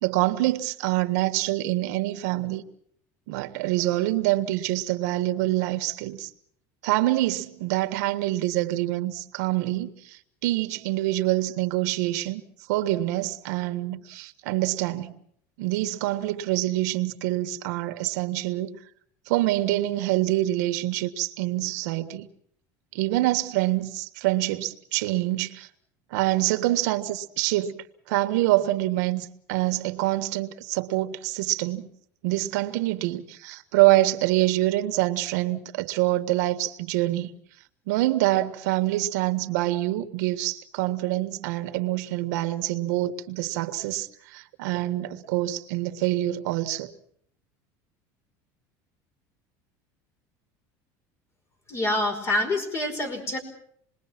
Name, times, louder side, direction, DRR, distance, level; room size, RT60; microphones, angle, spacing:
voice 1, 0.0-2.6 3.3-6.3 6.8-12.4 12.7-15.1 15.6-18.8 19.3-22.3 22.9-25.7 26.1-31.9 32.2-37.3 37.9-46.9, right 17 dB, 85° right, 1.5 m, -26 dB
voice 2, 51.7-53.4, left 1 dB, 30° left, 5.1 m, -26 dB
27.5 x 21.0 x 6.0 m
cardioid pair, 150°, 9 cm